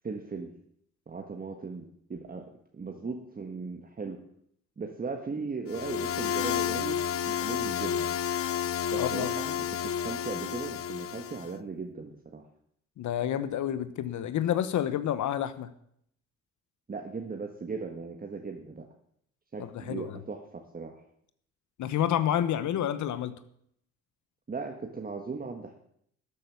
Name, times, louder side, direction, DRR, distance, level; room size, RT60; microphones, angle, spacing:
voice 1, 0.0-0.5 1.1-4.2 4.8-8.1 8.9-12.5 16.9-18.8 19.5-21.0 24.5-25.7, right 4 dB, 30° right, 3 dB, 1.5 m, -38 dB
sound 1, 5.7-11.5, left 9 dB, 50° left, 0.6 m, -31 dB
voice 2, 8.9-9.3 13.0-15.7 19.6-20.2 21.8-23.4, left 10 dB, 75° left, 12 dB, 1.0 m, -29 dB
12.5 x 8.4 x 7.0 m, 0.70 s
cardioid pair, 90°, 30 cm